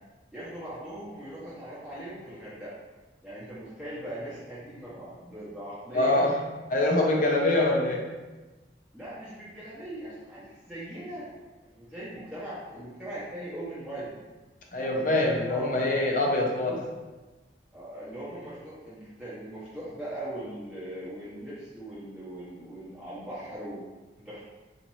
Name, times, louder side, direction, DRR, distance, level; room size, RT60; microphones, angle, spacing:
voice 1, 0.3-2.7 3.2-6.4 7.0-7.7 8.9-11.3 11.6-14.2 14.8-15.8 17.7-23.8 24.2-24.4, right 1 dB, 5° right, -12 dB, 0.7 m, -40 dB
voice 2, 5.9-6.4 6.7-8.0 14.7-16.8, left 2 dB, 45° left, -1 dB, 0.6 m, -24 dB
4.1 x 2.5 x 3.0 m, 1.2 s
head